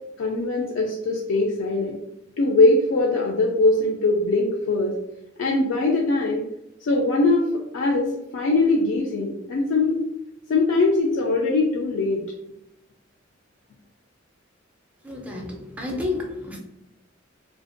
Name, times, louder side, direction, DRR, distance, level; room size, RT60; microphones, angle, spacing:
voice 1, 0.2-2.0 2.4-4.9 5.4-6.4 6.8-10.0 10.5-12.2, left 2 dB, 70° left, 0 dB, 0.3 m, -21 dB
voice 2, 15.0-16.6, left 2 dB, 5° right, 0 dB, 0.4 m, -30 dB
2.5 x 2.1 x 2.4 m, 0.86 s
head